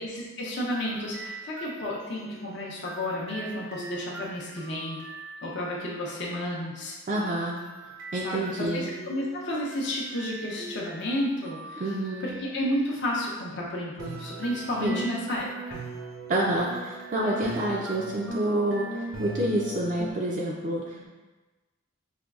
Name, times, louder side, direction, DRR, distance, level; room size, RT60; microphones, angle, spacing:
voice 1, 0.0-5.0 5.4-7.0 8.2-11.8 12.2-15.8 21.0-21.1, left 1 dB, 55° left, -4 dB, 0.6 m, -32 dB
sound 1, 0.6-5.9 7.1-12.9 14.0-20.1, right 2 dB, 75° right, 0.7 m, -41 dB
voice 2, 7.1-7.6 8.1-8.9 11.8-12.2 14.8-15.1 16.3-21.1, right 1 dB, 35° right, -3 dB, 0.3 m, -28 dB
5.0 x 2.3 x 2.3 m, 1.2 s
head